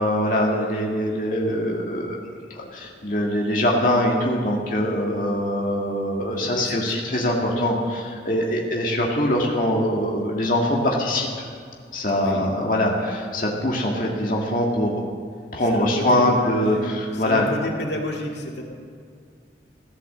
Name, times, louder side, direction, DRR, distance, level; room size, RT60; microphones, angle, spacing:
voice 1, 0.0-2.2 2.6-11.3 11.9-15.0 15.5-17.4, left 1 dB, 50° left, -2 dB, 2.0 m, -23 dB
voice 2, 6.3-7.1 8.4-8.7 12.2-12.5 15.6-18.6, left 1 dB, 80° left, 0 dB, 2.2 m, -32 dB
16.0 x 11.0 x 7.4 m, 2.2 s
head